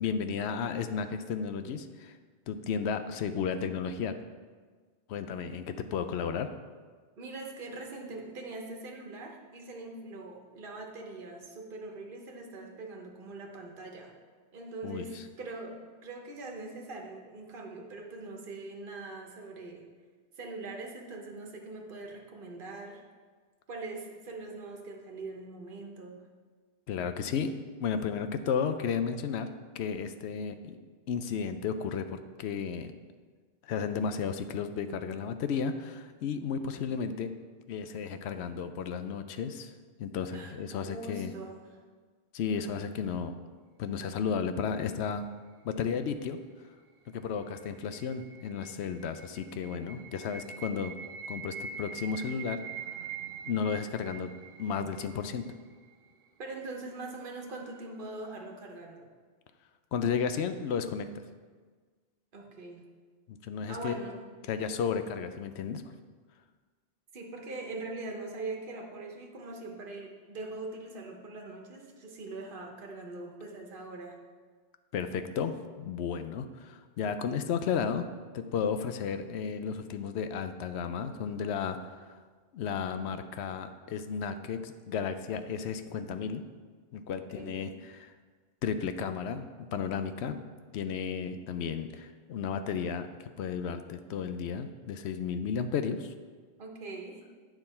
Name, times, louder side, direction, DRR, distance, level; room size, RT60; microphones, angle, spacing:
voice 1, 0.0-2.1 2.5-4.2 5.1-6.5 14.8-15.2 26.9-27.5 27.8-29.5 29.7-30.8 31.1-32.9 33.6-37.3 37.7-39.7 40.0-41.3 42.3-43.3 43.8-45.3 45.6-46.4 47.1-50.9 51.3-52.6 53.5-54.3 54.6-55.5 59.9-61.1 63.3-63.9 64.5-65.8 74.9-78.1 78.3-82.1 82.5-86.4 86.9-88.1 88.6-90.4 90.7-96.1, left 6 dB, 80° left, 9 dB, 0.9 m, -33 dB
voice 2, 7.2-14.1 14.5-19.9 20.4-23.0 23.7-26.2 40.3-41.8 56.4-59.1 62.3-62.8 63.7-64.3 67.1-74.2 87.4-87.7 96.6-97.2, right 2 dB, 55° right, 1 dB, 1.2 m, -42 dB
sound 1, 47.2-56.2, right 6 dB, 70° right, 0.8 m, -44 dB
9.1 x 6.0 x 4.2 m, 1.5 s
omnidirectional pair, 1.1 m